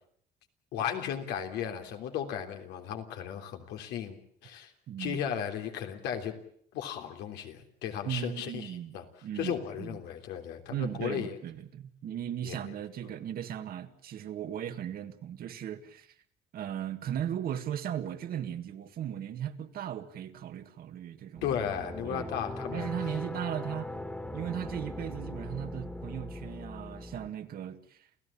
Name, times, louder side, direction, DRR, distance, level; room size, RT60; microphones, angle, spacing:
voice 1, 0.7-4.7 5.0-6.3 6.7-9.0 9.3-11.4 12.4-12.7 21.4-22.9, left 9 dB, 85° left, 3.3 m, -35 dB
voice 2, 4.9-5.2 8.0-8.9 9.2-10.0 10.7-16.1 16.5-21.5 22.0-22.3 22.7-23.9 24.3-28.1, right 10 dB, 60° right, 1.9 m, -37 dB
sound 1, 21.4-27.3, left 1 dB, 5° left, 2.1 m, -40 dB
29.0 x 15.5 x 8.6 m
cardioid pair, 110°, 17 cm